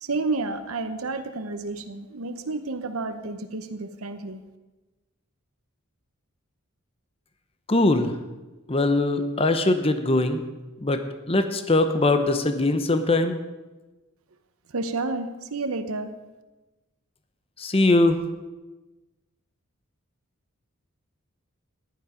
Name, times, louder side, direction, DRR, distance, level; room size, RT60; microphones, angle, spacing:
voice 1, 0.0-4.4 14.7-16.1, right 3 dB, 80° right, 8 dB, 0.9 m, -30 dB
voice 2, 7.7-8.1 8.7-10.4 10.8-11.0 11.3-13.4 17.6-18.2, left 2 dB, 25° left, 8 dB, 0.8 m, -21 dB
14.5 x 11.0 x 5.1 m, 1.1 s
head